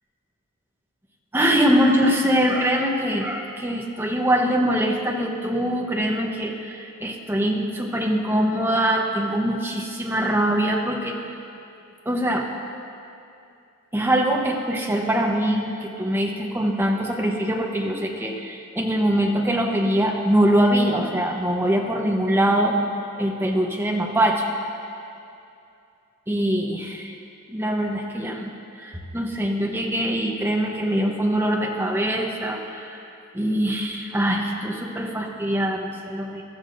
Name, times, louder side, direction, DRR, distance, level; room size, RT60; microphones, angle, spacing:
voice 1, 1.3-11.2 12.1-12.5 13.9-22.8 23.2-24.5 26.3-27.1 27.5-33.0 33.3-36.4, right 1 dB, 10° right, 0 dB, 0.9 m, -23 dB
14.0 x 13.5 x 2.6 m, 2.6 s
head